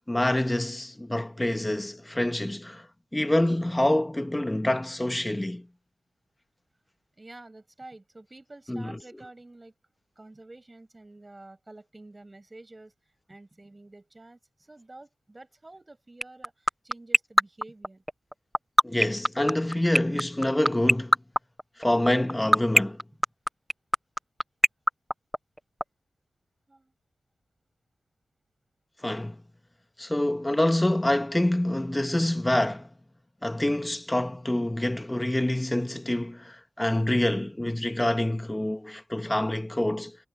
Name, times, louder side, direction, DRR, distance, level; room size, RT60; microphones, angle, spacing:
voice 1, 0.1-2.9 3.1-5.7 8.7-9.0 18.8-21.2 21.8-23.0 29.0-29.4 30.0-32.9 33.4-40.2, left 1 dB, 15° left, 1.6 m, -26 dB
voice 2, 7.2-9.7 10.2-12.9 13.3-18.0 26.7-26.9, right 2 dB, 30° right, 7.5 m, -49 dB
sound 1, 16.2-25.8, equal, ahead, 0.5 m, -18 dB
cardioid pair, 50°, 0 cm